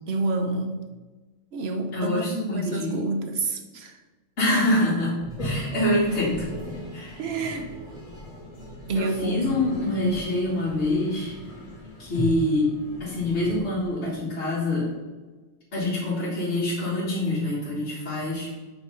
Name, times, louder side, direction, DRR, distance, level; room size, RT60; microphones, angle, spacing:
voice 1, 0.1-0.8 1.5-4.0 7.2-7.7 8.9-9.4, right 2 dB, 55° right, 5 dB, 1.0 m, -28 dB
voice 2, 1.9-3.0 4.4-6.5 6.9-7.2 8.9-11.4 12.0-12.7 13.0-14.9 15.7-18.5, left 1 dB, 60° left, -9 dB, 2.0 m, -25 dB
Toilet flush, 5.2-14.3, right 1 dB, 25° left, 2.3 m, -37 dB
8.2 x 3.2 x 5.4 m, 1.3 s
omnidirectional pair, 1.3 m